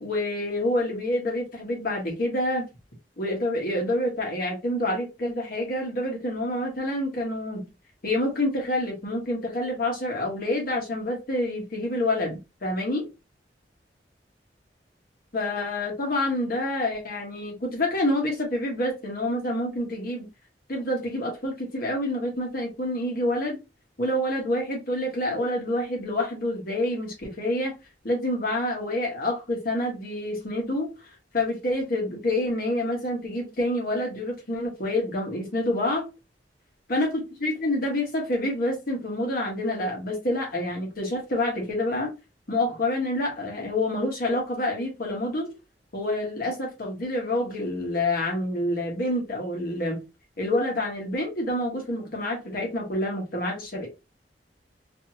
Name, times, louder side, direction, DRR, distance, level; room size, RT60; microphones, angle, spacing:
voice 1, 0.0-2.7 3.2-7.6 8.0-13.0 15.3-20.3 20.7-23.6 24.0-27.7 28.0-36.1 36.9-42.1 42.5-45.5 45.9-50.0 50.4-53.9, left 1 dB, 55° left, 1.1 m, -27 dB
2.8 x 2.6 x 2.6 m
head